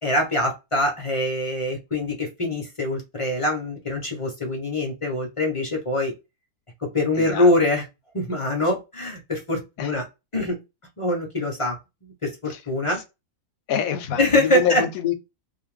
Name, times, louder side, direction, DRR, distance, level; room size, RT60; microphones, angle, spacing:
voice 1, 0.0-6.1 6.8-7.8 8.1-10.1 10.3-10.6 11.0-11.8 12.0-13.0 14.2-14.8, left 1 dB, 40° left, 0.5 m, -24 dB
voice 2, 7.1-7.5 9.8-9.9 12.5-12.6 13.7-15.1, left 9 dB, 70° left, 0.9 m, -25 dB
2.6 x 2.4 x 3.0 m
omnidirectional pair, 1.7 m